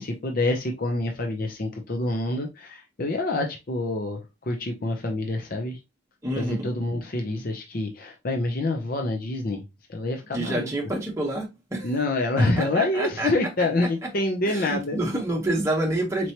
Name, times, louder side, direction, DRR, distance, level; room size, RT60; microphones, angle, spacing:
voice 1, 0.0-4.2 4.5-5.8 6.4-9.6 9.9-10.7 11.8-15.0, left 2 dB, 45° left, 0.6 m, -27 dB
voice 2, 6.2-6.7 10.3-12.0 12.4-13.3 14.5-16.3, right 1 dB, 15° right, 1.0 m, -28 dB
4.4 x 3.0 x 2.8 m
head